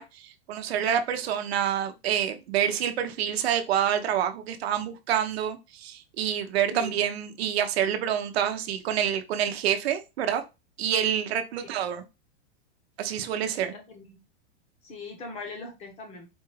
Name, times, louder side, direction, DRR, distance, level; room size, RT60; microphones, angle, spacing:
voice 1, 0.0-10.4 10.8-12.0 13.0-13.7, right 9 dB, 90° right, 0.7 m, -27 dB
voice 2, 13.2-14.2 14.8-16.3, left 3 dB, 20° left, 0.8 m, -41 dB
4.4 x 2.3 x 3.1 m
supercardioid pair, 165°, 30 cm